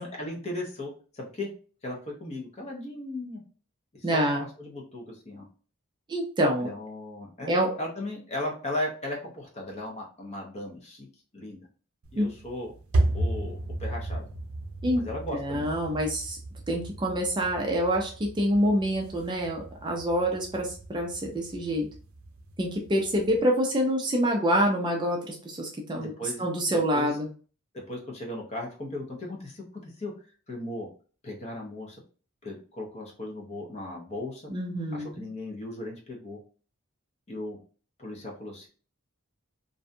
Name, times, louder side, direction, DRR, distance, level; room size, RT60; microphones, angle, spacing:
voice 1, 0.0-1.5 1.8-3.4 3.9-4.3 4.6-5.5 6.6-7.5 7.8-11.1 11.3-11.7 12.1-12.7 13.1-14.2 14.9-15.7 26.0-27.1 27.7-30.1 30.5-30.9 31.2-32.0 32.4-34.5 34.9-36.4 37.3-37.6 38.0-38.7, left 1 dB, 30° left, -1 dB, 0.7 m, -37 dB
voice 2, 4.0-4.5 6.1-6.7 7.5-7.7 12.2-12.3 14.8-15.0 15.3-16.4 16.7-21.9 22.6-27.3 34.5-35.2, equal, 20° right, 0 dB, 0.4 m, -26 dB
sound 1, 12.0-23.4, right 1 dB, 80° right, 0.5 m, -34 dB
2.5 x 2.2 x 2.5 m, 0.39 s
head